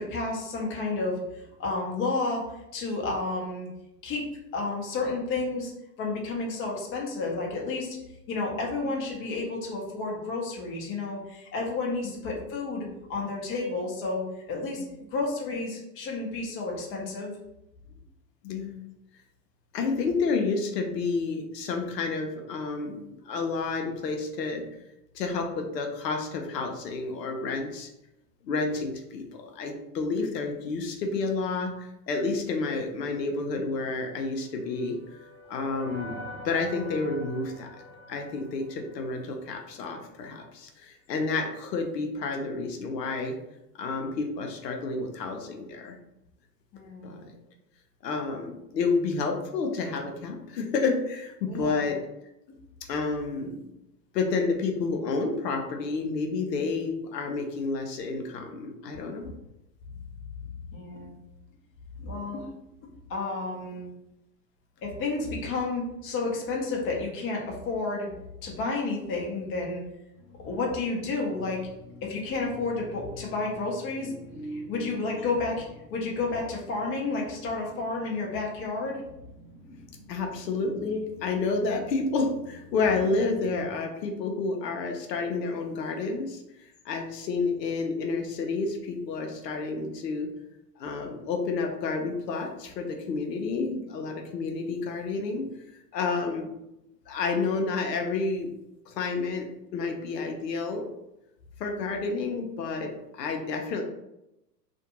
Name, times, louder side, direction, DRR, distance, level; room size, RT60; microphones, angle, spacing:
voice 1, 0.0-2.4 2.7-3.7 4.0-4.2 4.5-5.7 6.0-8.0 8.3-14.8 15.1-17.3 30.1-30.3 46.7-47.3 51.5-51.9 60.7-61.2 62.0-62.5 62.8-63.9 64.8-68.1 68.4-69.8 70.4-71.7 72.0-74.1 74.5-75.6 75.9-79.0 79.6-79.7 80.7-80.8, left 3 dB, 25° left, -1 dB, 0.7 m, -31 dB
voice 2, 18.4-18.8 19.7-24.6 25.1-27.9 28.5-35.0 35.5-36.2 36.4-37.7 38.1-43.3 43.8-46.0 47.0-47.2 48.0-52.0 52.9-53.7 54.1-59.3 80.1-86.4 86.8-90.3 90.8-95.5 95.9-96.5 97.1-98.5 98.9-100.9 101.6-103.8, left 4 dB, 80° left, 3 dB, 0.7 m, -30 dB
sound 1, 34.3-39.6, equal, 25° right, 0.6 m, -45 dB
sound 2, 70.1-83.6, equal, 60° left, 1.0 m, -48 dB
2.5 x 2.2 x 2.8 m, 0.87 s
hypercardioid pair, 110°, 49 cm